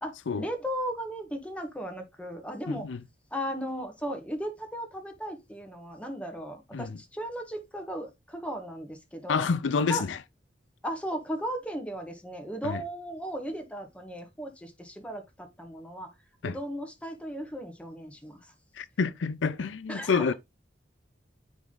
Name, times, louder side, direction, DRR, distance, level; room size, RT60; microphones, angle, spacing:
voice 1, 0.0-2.9 3.3-9.5 9.9-10.0 10.8-16.1 16.4-18.4 19.9-20.3, equal, 5° left, 1.4 m, -36 dB
voice 2, 2.7-3.0 6.7-7.0 9.3-10.2 12.6-12.8 16.4-16.6 18.8-20.3, left 5 dB, 90° left, 0.5 m, -28 dB
9.2 x 3.6 x 3.8 m
head